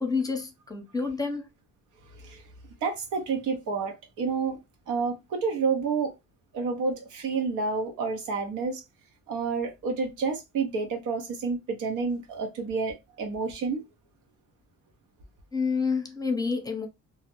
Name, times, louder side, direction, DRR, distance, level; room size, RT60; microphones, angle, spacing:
voice 1, 0.0-1.5 15.5-16.9, left 4 dB, 10° left, 0.7 m, -28 dB
voice 2, 2.8-4.6 4.9-6.1 6.5-8.8 9.3-13.8, right 4 dB, 90° right, 0.8 m, -29 dB
2.4 x 2.0 x 2.9 m
cardioid pair, 90°, 30 cm